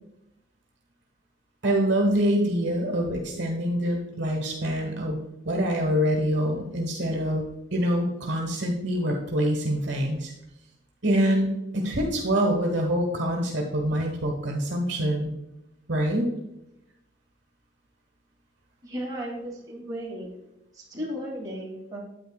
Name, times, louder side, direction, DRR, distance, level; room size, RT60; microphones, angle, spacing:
voice 1, 1.6-5.2 5.4-7.5 7.7-10.3 11.0-15.3 15.9-16.3, equal, 60° right, 0 dB, 1.3 m, -25 dB
voice 2, 18.8-20.3 20.7-22.0, equal, 20° right, -5 dB, 2.5 m, -35 dB
9.2 x 8.7 x 2.3 m, 0.88 s
head